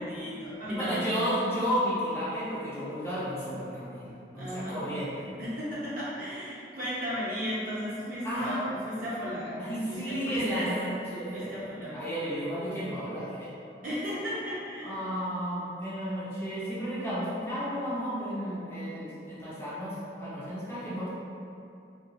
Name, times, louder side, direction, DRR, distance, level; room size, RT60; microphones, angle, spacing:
voice 1, 0.0-1.0 4.3-4.8 5.4-10.7 11.3-12.0 13.8-15.0, equal, 50° right, -10 dB, 0.8 m, -35 dB
voice 2, 0.7-5.3 8.2-8.6 9.6-11.5 11.9-13.5 14.8-21.1, equal, 15° left, -11 dB, 0.5 m, -33 dB
2.8 x 2.3 x 2.7 m, 2.6 s
head